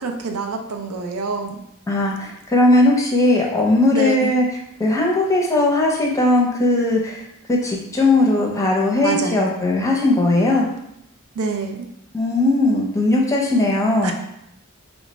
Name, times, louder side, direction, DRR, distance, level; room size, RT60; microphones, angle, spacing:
voice 1, 0.0-1.6 3.9-4.3 9.0-9.4 11.3-11.9 14.0-14.1, right 4 dB, 80° right, 4 dB, 0.5 m, -26 dB
voice 2, 1.9-4.4 4.8-7.2 7.5-10.7 12.1-14.1, left 2 dB, 15° left, -2 dB, 0.6 m, -18 dB
3.1 x 2.2 x 3.9 m, 0.78 s
head